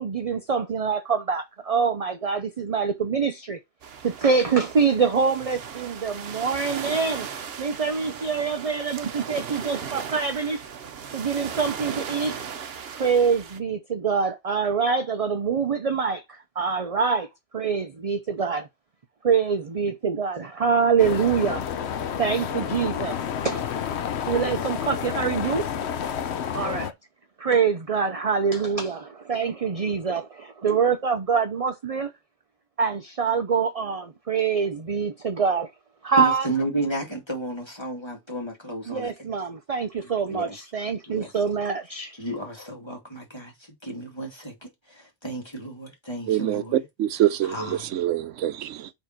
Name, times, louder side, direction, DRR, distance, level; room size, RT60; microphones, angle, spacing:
voice 1, 0.0-3.6 4.0-7.3 7.6-10.6 11.1-12.4 12.9-17.3 17.5-18.7 19.2-23.2 23.4-23.6 24.3-25.7 26.5-26.9 27.4-32.1 32.8-35.7 36.0-36.5 38.9-42.1, right 5 dB, 40° right, 0.6 m, -25 dB
sound 1, 3.8-13.6, right 7 dB, 60° right, 1.0 m, -37 dB
sound 2, 21.0-26.9, left 8 dB, 65° left, 0.9 m, -30 dB
voice 2, 36.2-39.4 40.3-40.7 41.1-41.4 41.8-46.8 47.4-47.9, right 2 dB, 20° left, 2.4 m, -33 dB
voice 3, 46.3-48.9, right 12 dB, 85° right, 1.0 m, -25 dB
6.8 x 3.9 x 4.5 m
omnidirectional pair, 1.3 m